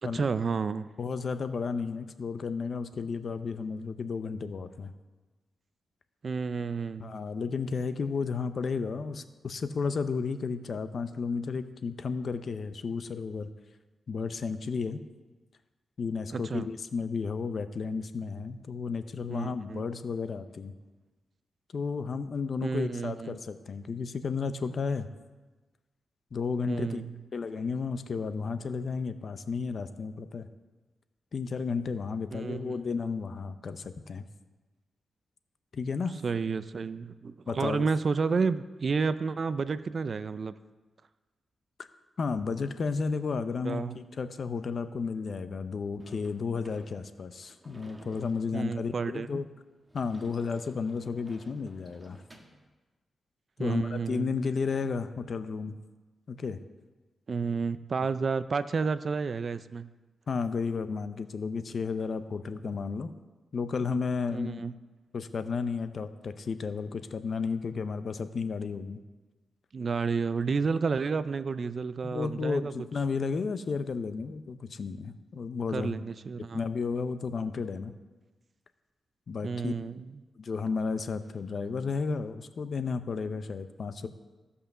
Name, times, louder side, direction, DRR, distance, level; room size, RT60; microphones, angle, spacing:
voice 1, 0.0-0.9 6.2-7.2 16.3-16.7 19.3-19.8 22.6-23.4 26.7-27.1 32.3-32.8 36.2-40.6 43.6-44.0 48.5-49.4 53.6-54.4 57.3-59.9 64.3-64.7 69.7-72.7 75.7-76.6 79.4-80.2, right 5 dB, 50° right, 14 dB, 0.4 m, -31 dB
voice 2, 1.0-4.9 7.0-13.5 14.1-15.0 16.0-20.7 21.7-25.1 26.3-30.5 31.3-34.2 35.7-36.2 37.5-37.9 41.8-41.9 42.2-49.5 49.9-52.2 53.6-55.8 56.3-56.6 60.3-63.1 63.5-64.6 65.1-69.0 72.0-75.9 76.5-77.9 79.3-79.7 80.4-84.1, left 5 dB, 55° left, 11 dB, 0.7 m, -33 dB
Sliding door / Slam, 46.0-52.7, right 1 dB, 20° right, 1.4 m, -55 dB
14.5 x 5.6 x 6.8 m, 1.2 s
cardioid pair, 90°, 0 cm